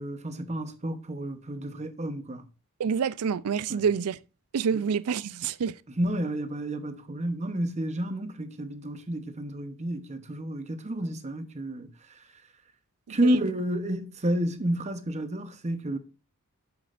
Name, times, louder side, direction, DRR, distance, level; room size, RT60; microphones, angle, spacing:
voice 1, 0.0-2.5 3.7-3.8 4.7-4.8 6.0-12.5 13.1-16.0, right 1 dB, 30° right, 0.9 m, -30 dB
voice 2, 2.8-4.2 4.5-5.8 13.1-13.4, right 6 dB, 75° right, 0.4 m, -27 dB
7.8 x 7.1 x 2.5 m
head